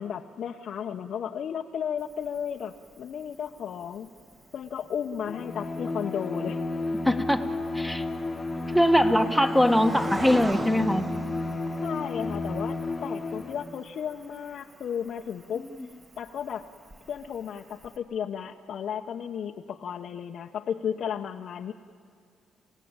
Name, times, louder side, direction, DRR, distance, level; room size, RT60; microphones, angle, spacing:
voice 1, 0.0-4.1 4.5-6.6 11.8-12.8 13.0-15.7 16.2-16.7 17.1-21.7, left 8 dB, 65° left, 2 dB, 0.9 m, -34 dB
Cricket, 2.0-18.0, right 2 dB, 30° right, 2.2 m, -44 dB
Bowed string instrument, 5.2-13.8, left 2 dB, 25° left, 1.4 m, -32 dB
voice 2, 7.0-7.5 7.7-8.0 8.7-11.0, equal, ahead, 7 dB, 1.6 m, -22 dB
28.5 x 17.0 x 8.9 m, 2.3 s
cardioid pair, 90°, 0 cm